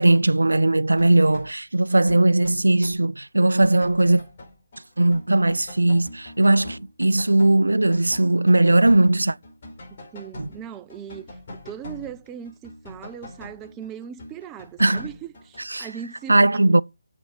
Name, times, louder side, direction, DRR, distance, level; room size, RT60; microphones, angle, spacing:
voice 1, 0.0-4.2 5.0-9.4 10.4-10.5 14.8-15.0 15.7-15.9 16.3-16.8, right 2 dB, 75° right, 0.4 m, -18 dB
sound 1, 1.0-1.5 1.9-3.0 3.4-4.9 5.1-15.6, left 1 dB, 40° left, 4.7 m, -43 dB
voice 2, 10.1-11.3 11.7-16.4, right 9 dB, 15° right, 0.5 m, -38 dB
7.9 x 6.0 x 6.9 m
figure-of-eight pair, 150°, 0 cm